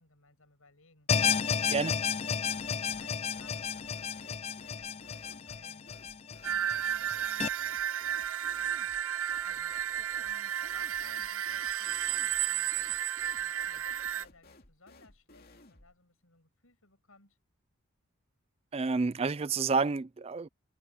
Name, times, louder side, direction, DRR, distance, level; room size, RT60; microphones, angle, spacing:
voice 1, 0.0-2.1 2.9-5.9 6.4-7.8 9.4-13.0 13.4-17.4, left 3 dB, 75° left, 7.3 m, -61 dB
sound 1, 1.1-7.5, left 6 dB, 30° left, 0.5 m, -32 dB
sound 2, 2.4-3.1 3.3-16.0, left 2 dB, 45° left, 2.8 m, -58 dB
sound 3, 6.4-14.2, right 10 dB, 75° right, 0.6 m, -33 dB
voice 2, 18.7-20.5, right 4 dB, 25° right, 0.4 m, -29 dB
head